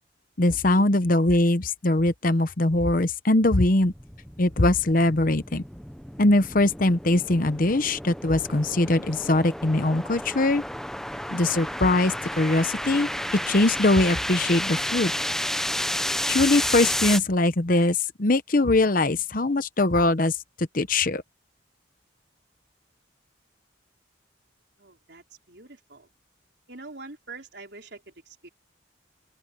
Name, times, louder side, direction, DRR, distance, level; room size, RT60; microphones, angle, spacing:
voice 1, 0.4-3.9 4.4-5.6 6.2-10.6 11.3-15.1 16.3-21.2, left 2 dB, 45° left, 0.9 m, -22 dB
sound 1, 3.8-17.2, left 1 dB, ahead, 0.8 m, -31 dB
voice 2, 24.8-26.1 26.7-28.5, right 3 dB, 60° right, 4.9 m, -44 dB
open air
head